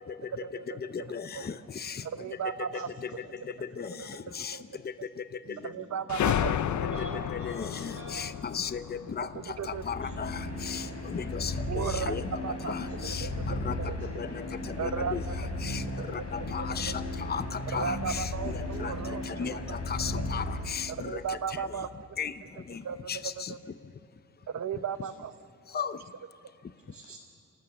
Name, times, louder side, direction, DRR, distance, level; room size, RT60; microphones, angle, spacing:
voice 1, 0.4-1.1 1.3-1.4 2.0-2.9 4.0-4.6 5.6-7.2 9.3-9.8 11.7-12.2 12.4-13.6 13.9-14.0 14.8-15.4 15.7-16.1 16.6-16.9 17.7-20.2 20.9-21.9 22.8-23.7 24.5-25.3, right 7 dB, 65° right, 11 dB, 1.0 m, -36 dB
voice 2, 0.9-2.0 3.8-4.0 4.3-4.6 7.3-9.3 9.7-12.2 12.6-13.3 13.6-13.7 14.2-14.4 14.8-15.2 15.6-15.8 16.1-18.9 19.3-21.4 22.2-22.3 23.1-23.5 25.7-25.9, left 6 dB, 35° left, 12 dB, 0.7 m, -36 dB
voice 3, 2.7-3.9 4.5-4.6 5.4-5.6 6.9-8.3 9.9-10.1 11.1-11.2 15.2-15.3 16.9-17.1 22.7-22.9 26.9-27.2, right 3 dB, 50° right, 0 dB, 6.5 m, -48 dB
sound 1, 6.1-10.5, left 10 dB, 75° left, 0.6 m, -32 dB
sound 2, 9.4-21.1, left 2 dB, 55° left, 7.5 m, -35 dB
27.0 x 18.5 x 7.1 m, 2.6 s
wide cardioid pair, 135°, 29 cm